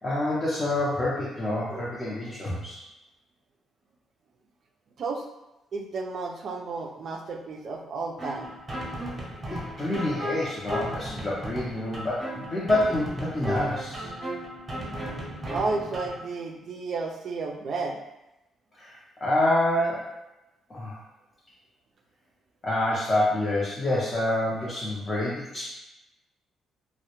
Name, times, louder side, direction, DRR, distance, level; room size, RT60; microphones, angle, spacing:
voice 1, 0.0-2.8 9.5-14.1 18.8-20.1 20.7-21.0 22.6-25.7, left 1 dB, 30° left, -7 dB, 0.6 m, -27 dB
voice 2, 5.7-8.5 15.5-18.0, right 3 dB, 60° right, 2 dB, 0.3 m, -32 dB
sound 1, 8.2-16.2, equal, 25° right, 0.7 m, -35 dB
2.1 x 2.0 x 2.9 m, 0.95 s
cardioid pair, 90°, 0 cm